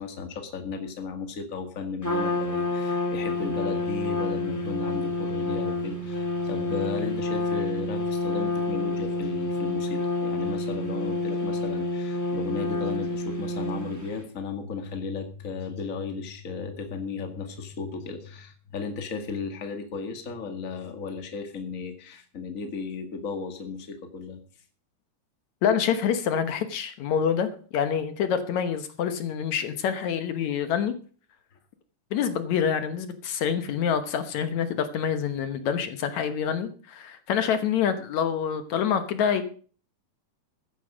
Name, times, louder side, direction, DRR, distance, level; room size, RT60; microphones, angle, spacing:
voice 1, 0.0-24.4, left 5 dB, 30° left, 6 dB, 2.0 m, -35 dB
Trumpet, 2.0-14.2, left 2 dB, 5° left, 2.0 m, -28 dB
voice 2, 25.6-30.9 32.1-39.5, left 8 dB, 75° left, 10 dB, 2.4 m, -26 dB
14.5 x 10.0 x 5.1 m, 0.41 s
omnidirectional pair, 3.4 m